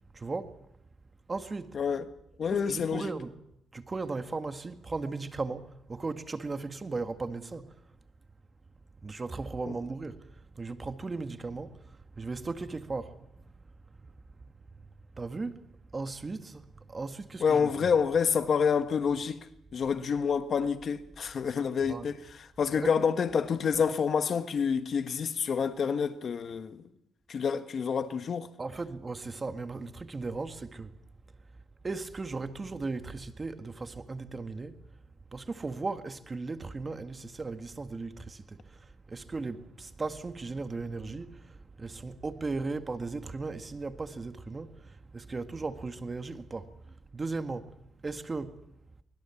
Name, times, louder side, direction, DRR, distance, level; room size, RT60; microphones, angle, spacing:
voice 1, 0.1-0.6 1.3-1.8 2.5-3.4 3.7-7.7 9.0-13.4 14.0-14.1 15.1-15.6 15.9-17.9 21.9-22.0 22.7-23.1 23.7-23.8 28.6-31.0 31.8-34.8 35.3-47.7 48.0-48.6, right 3 dB, 30° right, 1.8 m, -37 dB
voice 2, 1.7-2.1 2.4-3.1 9.7-9.8 17.4-19.5 19.7-26.8 27.3-28.5, left 6 dB, 50° left, 1.4 m, -28 dB
24.5 x 20.5 x 7.2 m
cardioid pair, 90°, 0 cm